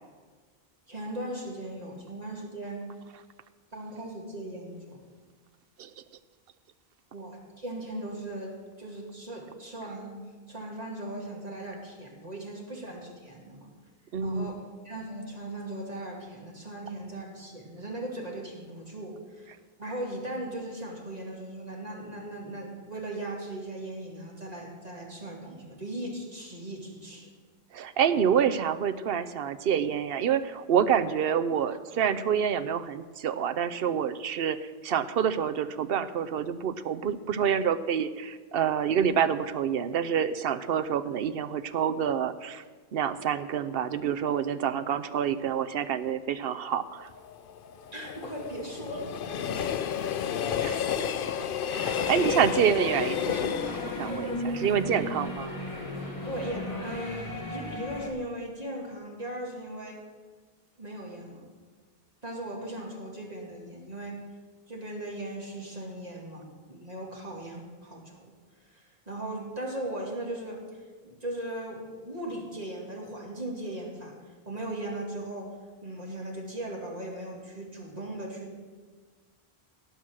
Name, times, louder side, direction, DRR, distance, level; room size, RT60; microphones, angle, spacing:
voice 1, 0.9-2.8 3.7-5.0 7.1-10.2 10.5-13.7 14.2-14.5 14.8-19.5 19.8-27.3 47.9-49.6 51.9-52.4 54.1-55.0 56.3-60.0 60.8-61.4 62.2-64.2 64.7-68.3 68.7-70.6 71.0-74.1 74.5-75.5 75.8-78.6, right 1 dB, 40° right, -2 dB, 2.4 m, -38 dB
voice 2, 14.1-14.5 27.7-34.6 34.8-42.6 42.9-47.1 50.6-50.8 51.7-55.5, right 8 dB, 70° right, 12 dB, 0.8 m, -27 dB
Train, 47.0-56.1 56.5-56.6, left 8 dB, 65° left, 0.7 m, -32 dB
sound 1, 51.7-58.1, left 1 dB, 30° left, 2.2 m, -36 dB
17.5 x 6.0 x 6.3 m, 1.4 s
omnidirectional pair, 1.0 m